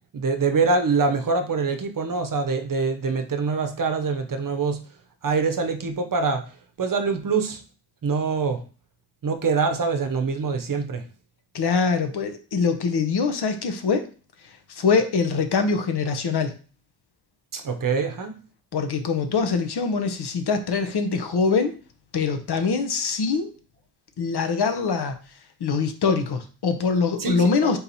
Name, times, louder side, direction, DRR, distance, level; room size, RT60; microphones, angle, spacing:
voice 1, 0.1-4.8 5.2-6.4 6.8-7.6 8.0-8.6 9.2-11.0 17.5-18.4 27.2-27.8, right 4 dB, 50° right, 8 dB, 0.8 m, -24 dB
voice 2, 11.5-14.0 14.7-16.5 18.7-21.7 22.1-23.5 24.2-25.2 25.6-27.8, left 5 dB, 65° left, 7 dB, 0.8 m, -23 dB
4.0 x 2.9 x 4.0 m, 0.37 s
cardioid pair, 55°, 43 cm